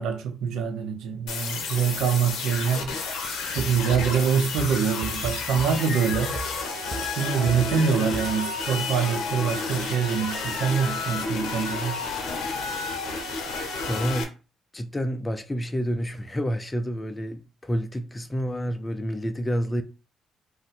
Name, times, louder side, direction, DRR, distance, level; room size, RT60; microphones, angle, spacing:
voice 1, 0.0-3.0 3.5-6.4 7.2-12.0, right 7 dB, 85° right, 0.5 m, -25 dB
sound 1, 1.3-14.2, left 4 dB, 85° left, 0.7 m, -31 dB
sound 2, 3.2-6.6 6.9-8.3, right 4 dB, 35° right, 0.5 m, -36 dB
voice 2, 13.9-14.3 14.7-19.8, equal, 15° left, 0.3 m, -29 dB
2.6 x 2.1 x 4.0 m
cardioid pair, 90°, 0 cm